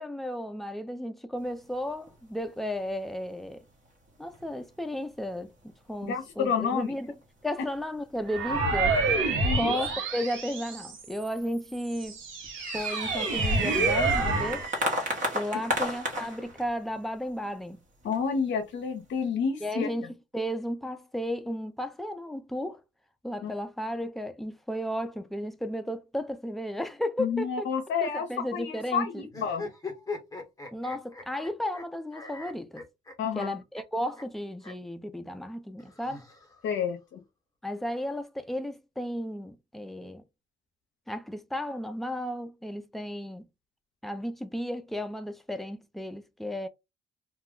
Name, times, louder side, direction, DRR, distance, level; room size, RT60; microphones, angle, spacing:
voice 1, 0.0-3.6 4.2-5.5 5.9-7.1 7.4-9.0 9.5-12.2 12.7-14.7 15.3-17.8 19.6-20.1 20.3-22.8 23.2-27.7 28.0-29.3 30.7-32.8 33.3-36.3 37.6-40.2 41.1-43.5 44.0-46.7, equal, ahead, 0.4 m, -34 dB
sound 1, 1.8-2.2 2.5-2.6 3.2-3.3 4.1-4.6 5.2-5.6 6.3-7.2 7.7-7.8 8.2-8.3 8.9-9.5 10.1-10.2 10.8-10.9 11.1-11.5 12.0-16.7 17.3-17.4 18.0-18.4, equal, 40° right, 1.0 m, -33 dB
voice 2, 6.0-6.9 9.4-9.7 18.0-19.9 23.4-23.5 27.2-28.3 28.5-29.6 33.2-33.6 36.6-37.2, left 6 dB, 65° left, 0.6 m, -29 dB
sound 2, 8.3-11.2 11.8-14.7, right 3 dB, 80° right, 1.0 m, -28 dB
sound 3, 29.3-31.8 32.1-33.5 33.7-33.8 34.2-34.3 34.6-34.7 35.8-36.8, left 3 dB, 15° left, 0.9 m, -40 dB
2.3 x 2.0 x 3.6 m
cardioid pair, 90°, 20 cm